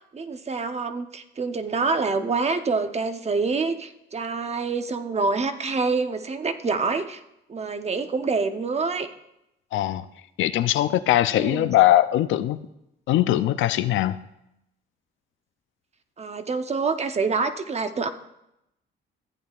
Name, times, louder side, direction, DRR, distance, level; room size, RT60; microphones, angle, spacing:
voice 1, 0.1-7.2 7.5-9.1 11.3-11.7 16.2-18.1, right 4 dB, 35° right, 9 dB, 0.8 m, -26 dB
voice 2, 9.7-10.1 10.4-12.6 13.1-14.2, left 13 dB, 80° left, 12 dB, 0.5 m, -21 dB
15.0 x 8.6 x 2.4 m, 0.84 s
cardioid pair, 90°, 20 cm